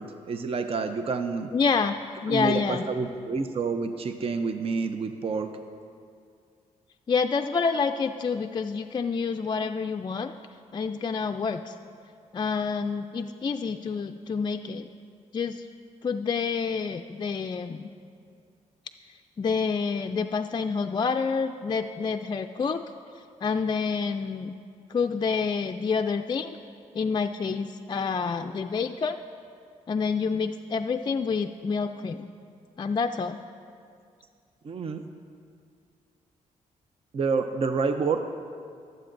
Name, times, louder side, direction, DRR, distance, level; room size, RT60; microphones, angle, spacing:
voice 1, 0.0-1.5 2.3-5.5 34.6-35.0 37.1-38.2, right 4 dB, 45° right, 7 dB, 0.6 m, -28 dB
voice 2, 1.5-2.0 2.2-2.8 7.1-10.3 10.7-11.8 12.3-14.9 15.3-15.7 16.0-17.9 19.4-22.8 23.1-24.5 24.9-26.6 26.9-29.2 29.9-32.3 32.8-33.4, left 5 dB, 35° left, 6 dB, 0.4 m, -28 dB
20.5 x 7.7 x 2.6 m, 2.3 s
cardioid pair, 75°, 14 cm